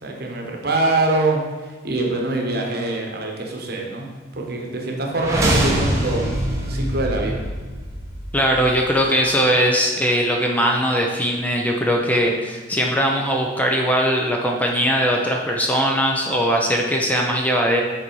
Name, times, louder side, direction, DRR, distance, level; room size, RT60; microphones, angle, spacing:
voice 1, 0.0-4.1 4.3-6.3 6.7-7.5, right 2 dB, 55° right, 0 dB, 1.1 m, -24 dB
sound 1, 5.1-9.1, right 1 dB, 15° right, 0.9 m, -24 dB
voice 2, 8.3-17.8, equal, 10° left, 0 dB, 0.5 m, -20 dB
7.0 x 4.2 x 4.6 m, 1.3 s
head